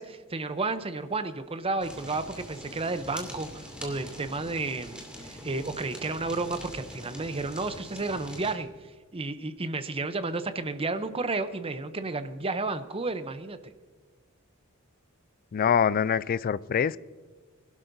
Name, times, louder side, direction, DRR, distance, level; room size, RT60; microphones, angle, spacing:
voice 1, 0.0-13.6, right 3 dB, 25° right, 10 dB, 0.7 m, -32 dB
Fire, 1.8-8.5, equal, 5° right, 2.5 m, -43 dB
voice 2, 15.5-17.0, left 7 dB, 45° left, 18 dB, 0.3 m, -24 dB
21.0 x 12.0 x 2.7 m, 1.5 s
head